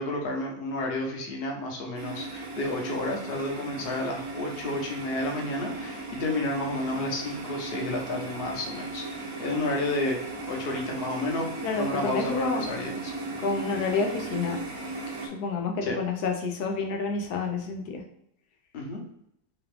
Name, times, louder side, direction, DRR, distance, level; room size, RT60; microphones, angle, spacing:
voice 1, 0.0-10.2 10.5-11.5 11.8-13.1 15.8-16.0 18.7-19.0, left 2 dB, 45° left, 0 dB, 1.0 m, -31 dB
sound 1, 1.9-15.3, right 3 dB, 65° right, 1.4 m, -37 dB
voice 2, 11.6-12.7 13.4-14.6 15.2-18.0, left 4 dB, 80° left, 2 dB, 1.1 m, -29 dB
4.1 x 2.4 x 3.3 m, 0.76 s
omnidirectional pair, 1.7 m